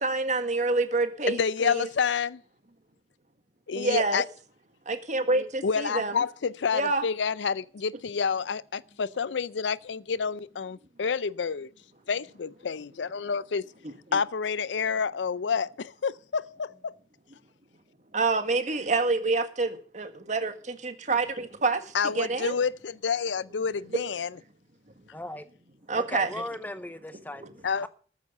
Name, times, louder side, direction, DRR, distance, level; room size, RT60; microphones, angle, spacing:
voice 1, 0.0-1.9 3.8-4.2 4.9-6.2 6.7-7.0 13.8-14.2 18.1-22.6 25.9-26.4 27.4-27.5, right 3 dB, 40° right, 1.7 m, -27 dB
voice 2, 1.3-2.4 3.7-4.3 5.6-11.7 12.1-13.6 14.1-16.9 21.9-24.3 27.6-27.9, left 6 dB, 85° left, 0.5 m, -29 dB
voice 3, 25.1-25.4 25.9-27.5 27.8-27.9, left 1 dB, 10° left, 0.6 m, -37 dB
14.0 x 8.0 x 6.7 m
head